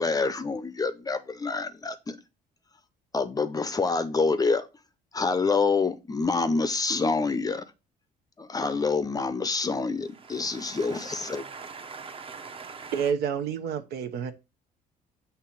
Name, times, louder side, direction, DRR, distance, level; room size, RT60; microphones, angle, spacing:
voice 1, 0.0-2.2 3.1-4.7 5.1-7.6 8.4-11.5, left 4 dB, 20° left, 0.6 m, -27 dB
voice 2, 10.2-13.1, right 5 dB, 35° right, 0.9 m, -42 dB
voice 3, 12.9-14.3, right 7 dB, 70° right, 0.9 m, -29 dB
6.8 x 2.9 x 5.8 m
cardioid pair, 110°, 17 cm